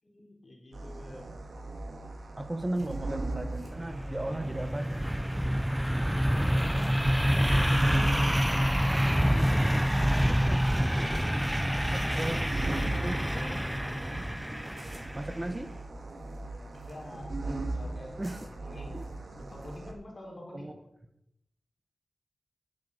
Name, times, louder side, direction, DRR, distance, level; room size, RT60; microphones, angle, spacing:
voice 1, 0.0-1.3 6.3-9.0 9.3-10.4 11.7-13.6 16.5-19.0 19.4-20.8, left 1 dB, 45° left, -1 dB, 4.4 m, -45 dB
sound 1, 0.7-19.9, right 2 dB, 70° right, 2.1 m, -39 dB
voice 2, 2.4-5.0 10.3-10.6 11.9-13.3 14.5-14.7 15.1-15.7 18.2-18.5 18.9-19.0 20.5-20.7, right 1 dB, 25° right, 9 dB, 1.1 m, -36 dB
sound 2, 2.7-6.0 6.7-7.1 7.4-8.5 9.3-11.7 12.1-12.6 13.0-14.0 14.7-15.3 16.0-17.2 18.2-19.8, right 2 dB, 40° right, 4.0 m, -61 dB
sound 3, 3.7-15.4, equal, 5° right, 0.4 m, -27 dB
9.9 x 8.5 x 6.7 m, 0.83 s
cardioid pair, 50°, 0 cm